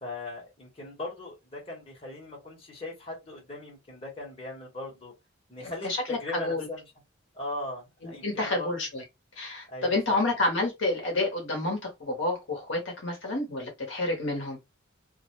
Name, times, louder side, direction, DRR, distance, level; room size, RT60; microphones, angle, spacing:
voice 1, 0.0-5.1 5.5-6.8 7.3-8.7 9.7-10.3, left 2 dB, 30° left, 0.9 m, -39 dB
voice 2, 5.6-6.7 8.0-9.0 9.3-14.6, left 2 dB, 65° left, 0.8 m, -29 dB
2.2 x 2.0 x 2.9 m
head